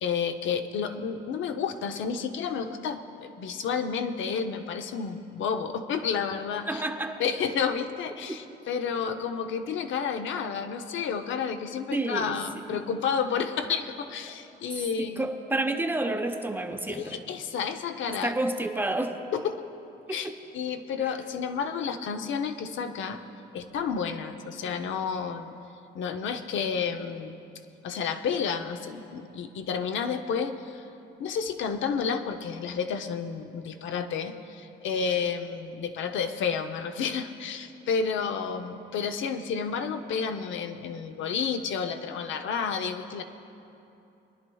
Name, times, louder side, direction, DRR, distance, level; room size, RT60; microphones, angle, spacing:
voice 1, 0.0-6.8 7.2-15.3 16.9-18.3 19.3-19.6 20.1-23.2 23.5-25.5 25.9-27.4 27.8-30.8 31.2-43.2, left 6 dB, 75° left, 7 dB, 0.7 m, -31 dB
voice 2, 6.7-7.2 11.9-12.4 12.7-12.8 15.0-17.2 18.2-19.2 20.1-20.4, right 2 dB, 10° right, 5 dB, 0.8 m, -29 dB
22.5 x 10.5 x 2.3 m, 2.8 s
cardioid pair, 90°, 20 cm